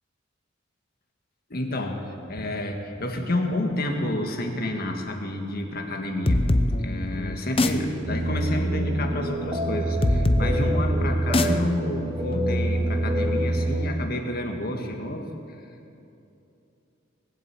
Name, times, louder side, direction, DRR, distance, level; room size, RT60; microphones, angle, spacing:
voice 1, 1.5-6.4 6.8-15.3, left 1 dB, 50° left, 3 dB, 1.6 m, -29 dB
sound 1, 6.2-13.6, left 1 dB, 30° left, 0.6 m, -26 dB
sound 2, 8.1-13.9, right 1 dB, 20° right, 0.8 m, -26 dB
19.0 x 8.0 x 8.3 m, 2.7 s
head